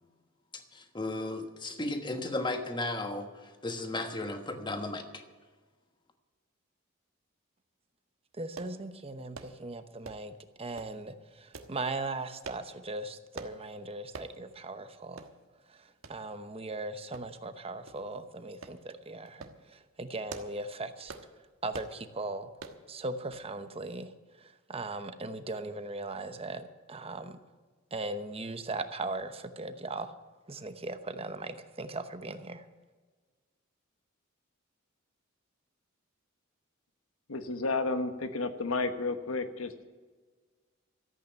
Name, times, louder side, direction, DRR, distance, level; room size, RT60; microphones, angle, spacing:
voice 1, 0.7-3.3 3.6-5.0, left 2 dB, 25° left, 1.3 m, -34 dB
voice 2, 8.4-15.3 15.7-21.2 21.6-22.5 22.9-27.4 27.9-30.1 30.5-32.6, right 2 dB, 30° right, 0.9 m, -39 dB
sound 1, 8.6-8.8 9.3-9.6 10.0-10.3 10.8-11.0 11.5-11.7 12.4-12.7 13.4-13.6 14.1-14.3 14.7-14.8 15.2-15.3 16.0-16.2 17.1-17.5 17.9-18.0 18.6-18.8 19.3-19.6 20.1-20.6 21.1-21.3 21.7-22.0 22.6-22.8 23.3-23.5 23.8-23.9, right 4 dB, 80° right, 1.3 m, -45 dB
voice 3, 37.3-39.8, left 3 dB, 80° left, 1.2 m, -32 dB
14.0 x 8.6 x 9.0 m
head